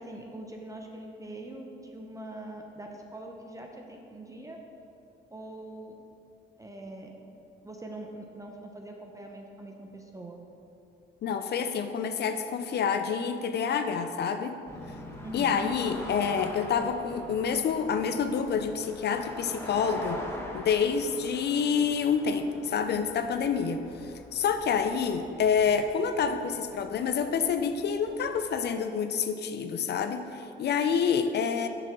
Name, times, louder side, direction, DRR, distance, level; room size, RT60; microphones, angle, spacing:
voice 1, 0.0-4.6 5.3-5.9 6.6-7.1 7.6-10.4 15.2-15.6, right 1 dB, 15° right, 2 dB, 0.7 m, -43 dB
voice 2, 11.2-14.6 15.3-20.2 20.5-31.7, left 6 dB, 55° left, 8 dB, 0.5 m, -28 dB
sound 1, 14.7-28.7, left 1 dB, 10° left, 1.1 m, -44 dB
6.5 x 4.5 x 6.0 m, 2.7 s
cardioid pair, 90°, 20 cm